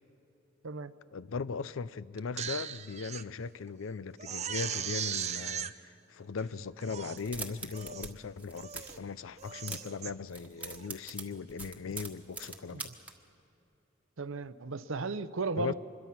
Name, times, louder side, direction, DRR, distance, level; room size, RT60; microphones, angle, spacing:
voice 1, 1.1-12.9 15.6-15.7, left 5 dB, 70° left, 0.5 m, -38 dB
Crying sobbing, 2.2-3.2 3.7-3.8 4.2-5.7 6.4-6.5 6.8-7.2 7.7-8.1 8.5-9.0 9.4-10.1 10.6-10.9, right 9 dB, 35° right, 0.6 m, -38 dB
sound 1, 7.1-8.1 8.4-9.0 9.4-10.0 10.3-13.1, right 3 dB, 5° right, 1.4 m, -42 dB
voice 2, 14.2-15.7, right 4 dB, 65° right, 0.7 m, -35 dB
25.5 x 22.0 x 5.9 m
head